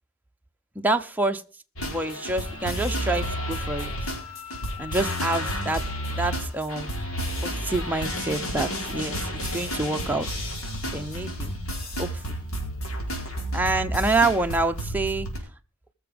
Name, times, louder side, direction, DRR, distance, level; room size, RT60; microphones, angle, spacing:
voice 1, 0.7-1.4 1.8-4.1 4.8-5.9 6.1-7.1 7.4-10.4 10.9-11.6 12.0-12.4 13.5-15.3, right 2 dB, 10° right, 5 dB, 0.8 m, -27 dB
sound 1, 1.8-15.4, equal, 75° left, 4.4 m, -31 dB
Wind instrument woodwind instrument, 2.4-6.4, left 5 dB, 20° left, 3.5 m, -42 dB
20.0 x 7.1 x 5.2 m, 0.35 s
head